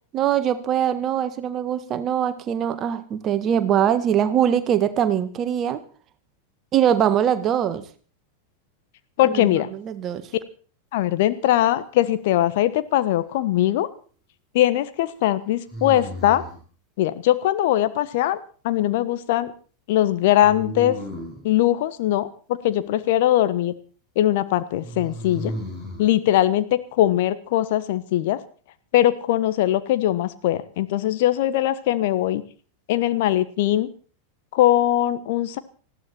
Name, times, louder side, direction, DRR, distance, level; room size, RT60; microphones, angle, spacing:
voice 1, 0.1-5.8 6.7-7.8 9.2-10.3, right 9 dB, 30° right, 11 dB, 1.7 m, -22 dB
voice 2, 9.2-9.7 10.9-13.9 14.5-16.4 17.0-18.4 18.6-19.5 19.9-21.0 21.4-23.7 24.1-25.5 26.0-28.4 28.9-32.4 32.9-33.9 34.5-35.6, left 13 dB, 50° left, 12 dB, 1.3 m, -21 dB
sound 1, 13.0-13.6 15.7-16.7 20.4-21.5 24.8-26.1, right 1 dB, 15° left, 5.9 m, -34 dB
20.0 x 15.0 x 4.5 m, 0.40 s
figure-of-eight pair, 90°, 0 cm